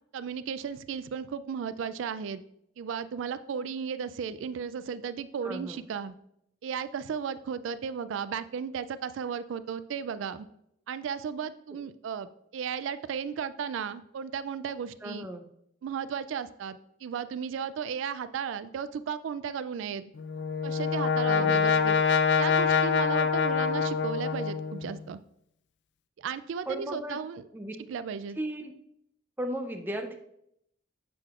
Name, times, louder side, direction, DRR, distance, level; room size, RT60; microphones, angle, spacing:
voice 1, 0.1-2.4 2.8-6.1 6.6-10.5 10.9-15.3 15.8-20.0 20.6-22.0 22.4-25.2 26.2-27.5 27.9-28.4, right 7 dB, 80° right, 13 dB, 0.3 m, -35 dB
voice 2, 5.4-5.8 15.0-15.4 21.3-21.7 26.7-27.2 27.5-27.7 28.4-28.7 29.4-30.2, right 1 dB, 10° right, 4 dB, 0.6 m, -35 dB
Brass instrument, 20.2-24.9, left 6 dB, 60° left, 0.4 m, -25 dB
7.6 x 6.4 x 2.4 m, 0.75 s
head